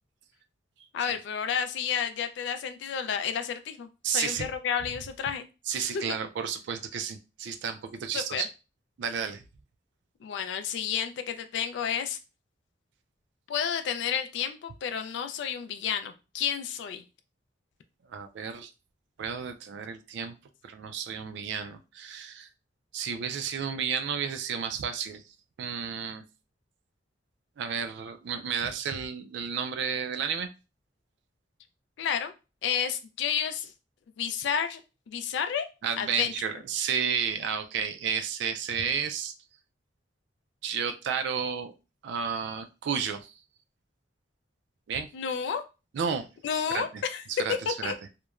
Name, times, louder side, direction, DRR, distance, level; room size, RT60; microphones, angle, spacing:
voice 1, 0.9-5.4 8.1-8.4 10.2-12.2 13.5-17.0 32.0-32.3 32.6-33.7 34.2-34.8 35.1-35.7 36.0-36.3 45.1-45.6 46.4-47.2 47.8-47.9, left 8 dB, 65° left, 8 dB, 0.3 m, -31 dB
voice 2, 4.0-4.5 5.7-8.5 9.0-9.4 18.1-18.7 19.2-20.4 20.6-22.5 22.9-25.2 25.6-26.2 27.6-30.5 35.8-39.3 40.6-41.7 42.0-43.4 44.9-45.1 45.9-46.3 46.7-47.0 47.3-47.9, right 7 dB, 65° right, 8 dB, 0.3 m, -32 dB
2.9 x 2.1 x 2.3 m, 0.29 s
head